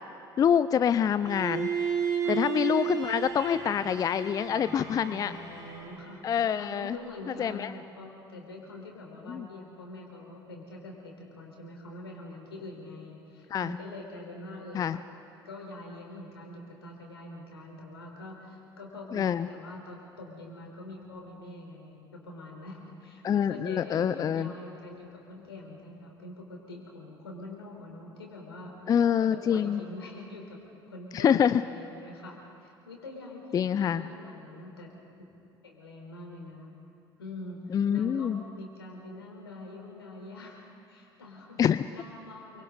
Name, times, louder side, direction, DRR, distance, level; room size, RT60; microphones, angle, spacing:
voice 1, 0.4-1.7 2.3-5.3 6.2-7.0 7.4-7.7 9.3-9.5 13.5-13.8 14.7-15.0 19.1-19.5 23.2-24.5 28.9-29.8 31.1-31.6 33.5-34.0 37.7-38.4 41.6-41.8, left 8 dB, 25° left, 15 dB, 0.5 m, -26 dB
Bowed string instrument, 1.2-6.2, right 7 dB, 30° right, 7.3 m, -33 dB
voice 2, 5.0-6.3 6.6-15.0 15.4-28.7 29.2-30.6 30.9-34.9 35.6-36.7 37.2-41.6 41.9-42.6, left 2 dB, 75° left, 0 dB, 4.2 m, -44 dB
28.5 x 24.0 x 4.1 m, 2.6 s
figure-of-eight pair, 65°, 13 cm